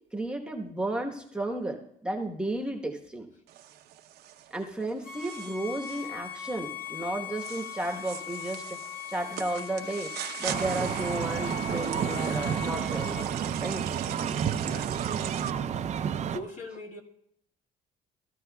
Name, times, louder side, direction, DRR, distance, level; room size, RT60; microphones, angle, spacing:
voice 1, 0.1-3.3 4.5-8.8 9.1-10.1 10.4-13.3 13.6-13.8, right 1 dB, 5° right, 2 dB, 1.1 m, -33 dB
sound 1, 3.5-15.5, right 12 dB, 75° right, 0.8 m, -41 dB
Bowed string instrument, 5.0-13.3, left 10 dB, 80° left, 2.1 m, -40 dB
sound 2, 10.5-16.4, right 8 dB, 40° right, 0.6 m, -30 dB
voice 2, 16.3-17.0, left 1 dB, 45° left, 1 dB, 1.9 m, -39 dB
17.0 x 13.0 x 2.3 m, 0.74 s
cardioid pair, 110°, 17 cm